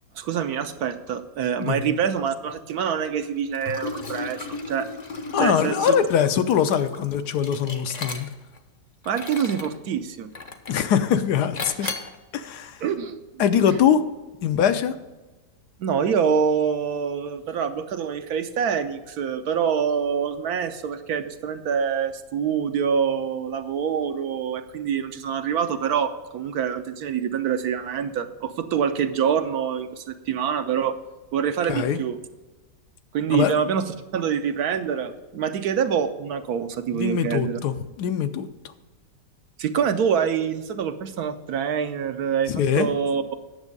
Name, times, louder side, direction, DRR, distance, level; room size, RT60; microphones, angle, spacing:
voice 1, 0.2-4.9 5.4-5.8 9.1-10.3 12.8-13.2 15.8-31.0 31.3-32.2 33.1-33.9 34.1-37.6 39.6-43.4, right 7 dB, 70° right, 9 dB, 1.2 m, -25 dB
voice 2, 1.6-1.9 5.3-8.3 10.7-11.9 12.3-12.8 13.4-14.0 14.4-14.9 31.7-32.0 33.3-33.5 36.9-38.5 42.5-42.9, left 8 dB, 75° left, 10 dB, 1.2 m, -22 dB
Liquid, 3.5-8.6 9.0-9.8 10.3-10.9 11.6-12.2, left 3 dB, 35° left, 0.7 m, -35 dB
9.7 x 7.2 x 5.3 m, 1.2 s
omnidirectional pair, 1.8 m